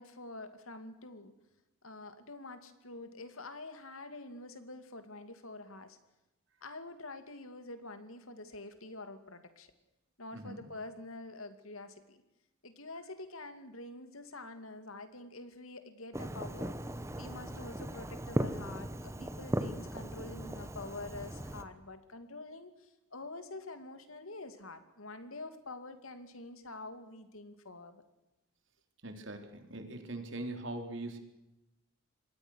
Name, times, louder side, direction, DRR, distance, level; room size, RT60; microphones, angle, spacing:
voice 1, 0.0-1.3 1.8-6.0 6.6-9.7 10.2-12.2 12.6-16.7 17.2-28.0, left 2 dB, 80° left, 9 dB, 2.7 m, -47 dB
voice 2, 10.3-10.6 29.0-31.2, right 2 dB, 60° right, 5 dB, 4.0 m, -41 dB
Fireworks, 16.1-21.6, right 1 dB, 15° right, 1.2 m, -38 dB
27.0 x 21.0 x 6.5 m, 0.94 s
head